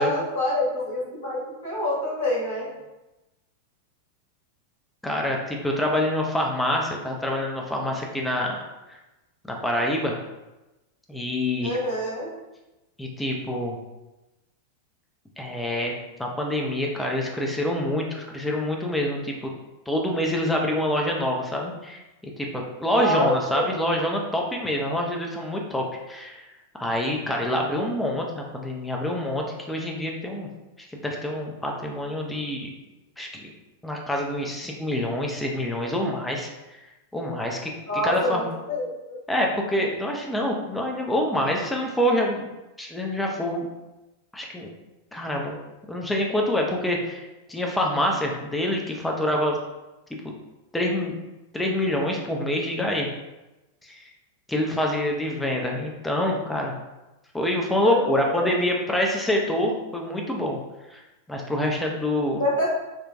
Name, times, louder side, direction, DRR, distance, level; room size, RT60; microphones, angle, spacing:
voice 1, 0.0-2.7 11.6-12.3 23.0-23.7 37.9-39.2 57.8-58.5 62.4-62.7, left 1 dB, 65° left, -7 dB, 1.2 m, -26 dB
voice 2, 5.0-8.6 9.5-10.2 11.1-11.8 13.0-13.8 15.4-15.9 16.2-19.3 19.9-22.5 22.8-26.4 26.7-30.5 30.9-32.7 33.2-33.5 33.8-36.5 37.1-37.7 38.0-38.5 39.3-42.5 42.8-43.7 44.3-44.7 45.1-45.6 45.9-49.6 50.7-51.1 51.5-53.1 53.9-54.0 54.5-56.7 57.3-60.6 60.9-61.0 61.3-62.4, left 1 dB, 5° left, 0 dB, 0.4 m, -26 dB
3.8 x 2.2 x 2.2 m, 1.0 s
figure-of-eight pair, 90°, 0 cm